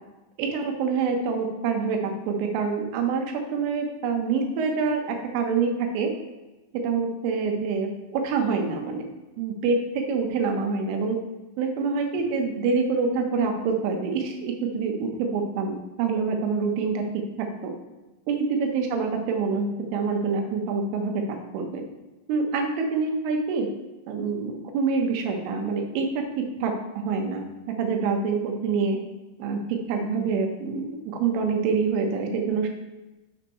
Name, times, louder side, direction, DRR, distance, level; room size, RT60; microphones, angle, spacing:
voice 1, 0.4-3.3 3.5-6.1 6.8-9.1 9.4-11.2 11.6-17.0 17.4-17.7 18.3-21.8 22.3-23.7 24.1-26.1 26.6-26.7 27.0-27.4 27.8-29.0 29.4-32.7, right 5 dB, 85° right, 3 dB, 3.6 m, -26 dB
10.5 x 6.6 x 3.1 m, 1.1 s
omnidirectional pair, 5.6 m